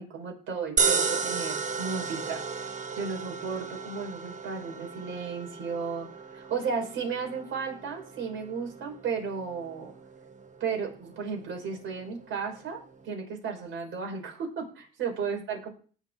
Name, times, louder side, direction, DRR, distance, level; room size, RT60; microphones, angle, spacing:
voice 1, 0.0-9.9 10.6-15.7, right 5 dB, 80° right, 1 dB, 5.7 m, -34 dB
sound 1, 0.8-13.1, right 5 dB, 40° right, 1.4 m, -34 dB
19.5 x 6.4 x 4.0 m, 0.41 s
cardioid pair, 90°, 20 cm